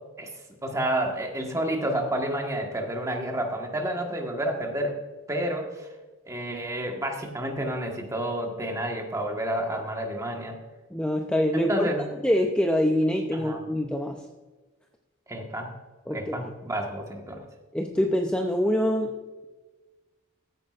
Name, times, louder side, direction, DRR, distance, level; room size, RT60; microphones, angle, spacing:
voice 1, 0.6-5.0 5.3-5.9 6.3-10.6 11.5-12.1 13.3-13.6 15.3-15.7 16.1-17.4, right 1 dB, 15° right, 2 dB, 1.4 m, -30 dB
voice 2, 10.9-11.9 12.2-14.2 16.1-16.5 17.7-19.2, equal, 5° left, 3 dB, 0.5 m, -25 dB
15.0 x 9.2 x 2.5 m, 1.2 s
head